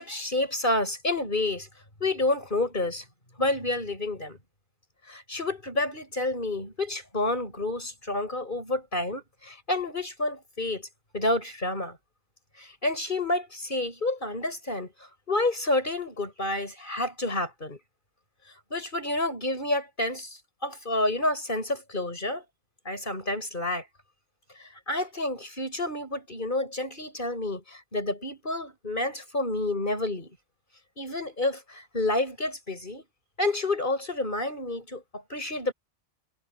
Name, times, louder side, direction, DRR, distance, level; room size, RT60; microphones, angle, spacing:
voice 1, 0.0-1.7 2.0-3.0 3.4-4.4 5.1-10.9 11.1-12.0 12.6-14.9 15.3-17.8 18.7-22.4 22.8-23.9 24.6-30.4 31.0-33.0 33.4-35.7, left 2 dB, 45° left, 6.7 m, -29 dB
omnidirectional pair, 1.1 m